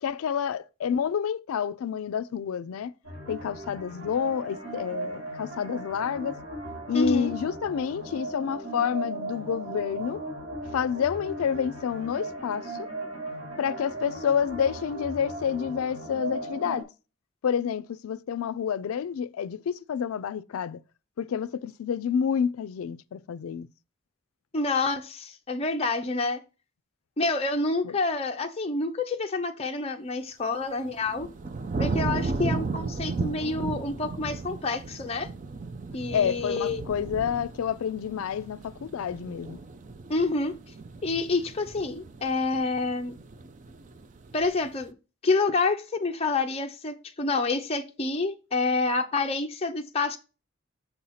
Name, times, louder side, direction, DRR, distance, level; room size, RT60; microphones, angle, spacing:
voice 1, 0.0-2.9 3.3-6.4 6.9-10.2 10.7-12.9 13.6-16.9 17.4-20.8 21.2-23.7 27.8-27.9 36.1-39.6, left 7 dB, 90° left, 0.4 m, -29 dB
sound 1, 3.0-16.8, right 1 dB, 70° right, 2.1 m, -37 dB
voice 2, 6.9-7.3 24.5-26.4 27.2-31.3 31.8-35.3 35.9-36.8 40.1-40.5 41.0-43.1 44.3-44.9 45.2-50.2, left 3 dB, 30° left, 0.5 m, -28 dB
sound 2, 30.6-44.8, right 3 dB, 35° right, 0.4 m, -35 dB
6.8 x 2.8 x 5.6 m
head